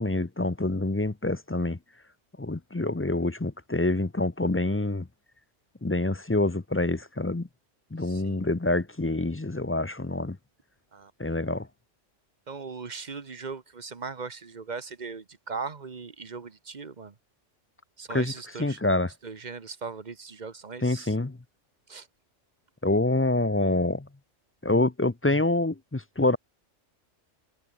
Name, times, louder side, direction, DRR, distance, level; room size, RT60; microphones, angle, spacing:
voice 1, 0.0-1.8 2.4-5.1 5.8-7.5 7.9-10.4 11.2-11.7 18.1-18.3 18.6-19.1 20.8-21.4 22.8-24.1 24.6-26.4, left 2 dB, 15° left, 0.5 m, -26 dB
voice 2, 8.0-8.4 10.9-11.4 12.5-17.1 18.0-18.8 19.2-21.1 21.9-22.1, right 4 dB, 40° right, 1.2 m, -39 dB
omnidirectional pair, 1.3 m